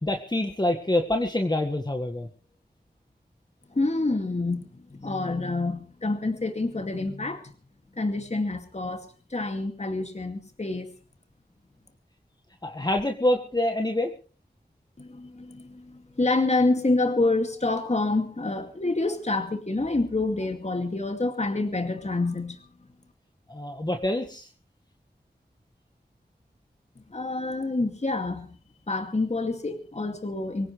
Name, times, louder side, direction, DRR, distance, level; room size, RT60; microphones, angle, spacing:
voice 1, 0.0-2.3 12.6-14.1 23.5-24.5, left 1 dB, 25° left, 4 dB, 1.7 m, -26 dB
voice 2, 3.7-7.5 8.0-10.9 15.0-22.7 27.1-28.6 28.9-30.7, left 2 dB, 40° left, 6 dB, 2.4 m, -27 dB
25.0 x 16.5 x 3.3 m, 0.38 s
wide cardioid pair, 75°, 17 cm